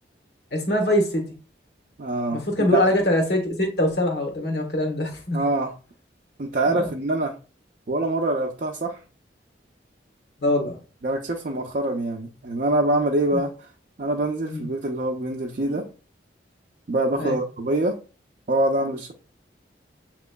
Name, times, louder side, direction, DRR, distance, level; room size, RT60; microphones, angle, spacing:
voice 1, 0.5-1.2 2.3-5.4 6.7-6.9 10.4-10.8 13.3-13.4 14.5-14.6 17.2-17.4, left 1 dB, 65° left, 2 dB, 1.2 m, -23 dB
voice 2, 2.0-2.4 2.7-2.8 5.3-5.7 6.4-7.3 7.9-9.0 11.0-13.5 14.0-15.9 16.9-18.0 18.5-19.1, right 2 dB, 45° right, 1 dB, 0.5 m, -24 dB
7.3 x 3.0 x 2.2 m, 0.34 s
head